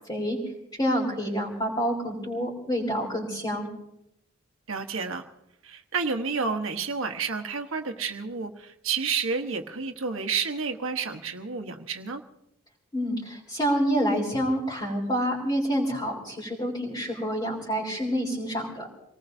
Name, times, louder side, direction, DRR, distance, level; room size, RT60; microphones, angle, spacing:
voice 1, 0.8-3.7 12.9-18.9, equal, 20° left, -7 dB, 3.8 m, -27 dB
voice 2, 4.7-5.2 5.6-12.2, right 5 dB, 75° right, 5 dB, 1.2 m, -30 dB
27.5 x 19.0 x 2.7 m, 0.81 s
head